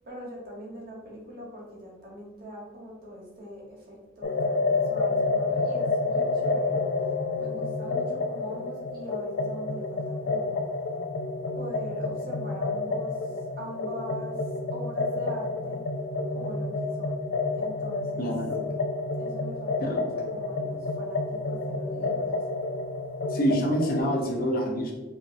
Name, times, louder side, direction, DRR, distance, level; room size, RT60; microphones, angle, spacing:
voice 1, 0.0-6.9 7.3-10.5 11.5-15.8 16.3-17.2 17.5-18.8 19.1-20.0 20.3-22.4, equal, 50° right, -3 dB, 1.1 m, -42 dB
sound 1, 4.2-24.0, left 3 dB, 65° left, 0.3 m, -29 dB
voice 2, 18.2-18.6 19.8-20.0 23.3-24.9, equal, 45° left, 1 dB, 0.7 m, -26 dB
5.0 x 2.6 x 2.5 m, 1.2 s
head